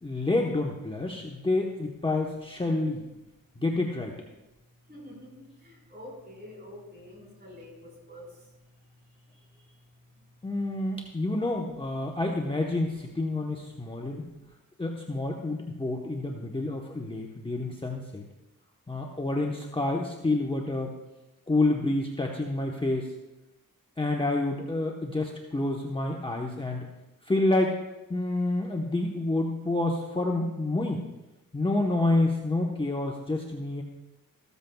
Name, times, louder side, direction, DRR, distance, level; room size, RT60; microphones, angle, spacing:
voice 1, 0.0-3.1 3.6-4.1 10.4-14.2 14.8-18.2 18.9-20.9 21.5-23.1 24.0-26.9 27.3-27.8 28.1-31.0 31.5-33.8, left 2 dB, 15° left, 0 dB, 1.0 m, -28 dB
voice 2, 4.9-8.3 9.6-9.7 10.8-10.9 14.3-14.4, left 1 dB, 30° right, -1 dB, 4.7 m, -47 dB
14.5 x 13.5 x 2.3 m, 0.99 s
cardioid pair, 95°, 35 cm